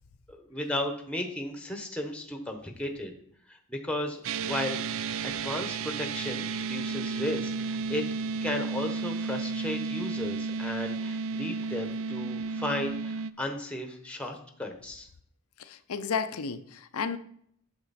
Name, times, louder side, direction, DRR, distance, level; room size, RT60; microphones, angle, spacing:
voice 1, 0.3-3.1 3.5-4.8 5.2-8.0 8.4-15.1, left 1 dB, 5° left, 4 dB, 1.0 m, -35 dB
sound 1, 4.2-13.3, right 4 dB, 65° right, 0.3 m, -33 dB
voice 2, 15.6-17.2, left 5 dB, 85° left, 9 dB, 0.5 m, -32 dB
8.8 x 6.7 x 4.2 m, 0.67 s
head